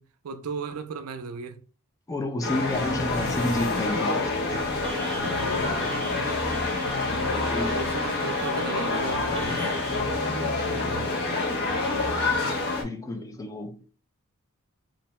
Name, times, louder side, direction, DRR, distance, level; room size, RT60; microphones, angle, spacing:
voice 1, 0.0-1.6 5.1-6.0 7.7-10.1 10.6-11.4, right 4 dB, 70° right, 0.4 m, -37 dB
voice 2, 2.1-4.6 5.2-5.3 7.3-7.8 12.8-13.9, left 1 dB, 15° left, 0.3 m, -31 dB
sound 1, 2.4-12.8, left 3 dB, 50° left, 0.6 m, -27 dB
sound 2, 3.8-12.8, left 1 dB, 90° left, 0.8 m, -42 dB
sound 3, 4.8-10.0, right 2 dB, 20° right, 0.7 m, -40 dB
2.6 x 2.1 x 3.0 m
head